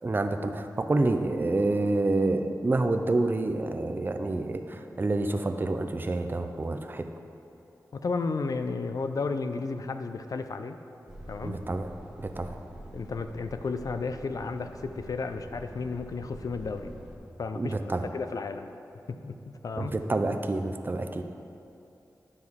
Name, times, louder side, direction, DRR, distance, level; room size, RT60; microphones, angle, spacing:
voice 1, 0.0-7.1 11.4-11.9 12.2-12.6 17.5-18.1 19.8-21.2, right 2 dB, 30° right, 7 dB, 0.5 m, -28 dB
voice 2, 7.9-10.8 11.3-11.6 12.9-16.9 17.4-17.8 18.1-18.7 19.1-19.9, left 4 dB, 60° left, 8 dB, 0.4 m, -33 dB
Truck, 11.1-17.2, right 1 dB, 5° right, 1.1 m, -46 dB
9.7 x 6.2 x 3.6 m, 2.7 s
wide cardioid pair, 110°, 7 cm